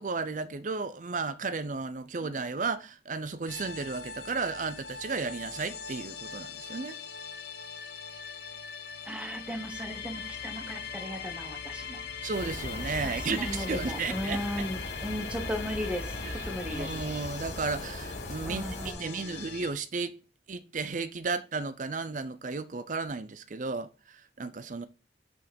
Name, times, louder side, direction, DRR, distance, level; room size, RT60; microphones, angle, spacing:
voice 1, 0.0-7.0 12.2-14.4 16.2-16.4 16.7-20.2 20.5-24.9, right 4 dB, 45° right, 0.5 m, -34 dB
sound 1, 3.5-19.7, left 6 dB, 75° left, 1.0 m, -41 dB
voice 2, 9.0-12.0 13.0-16.1 16.5-16.9 18.4-19.5, equal, 5° right, 1.1 m, -36 dB
sound 2, 12.3-18.9, left 1 dB, 40° left, 1.9 m, -39 dB
6.3 x 5.6 x 5.2 m
head